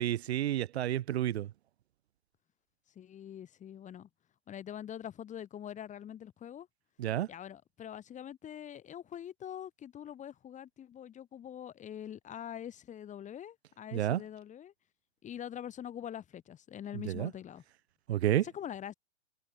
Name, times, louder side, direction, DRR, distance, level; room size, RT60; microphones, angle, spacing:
voice 1, 0.0-1.5 7.0-7.3 13.9-14.2 17.1-17.3 18.1-18.5, right 12 dB, 60° right, 1.7 m, -30 dB
voice 2, 2.9-4.1 4.5-6.7 7.3-14.7 15.2-17.6 18.4-18.9, left 10 dB, 20° left, 6.4 m, -44 dB
hypercardioid pair, 130°, 36 cm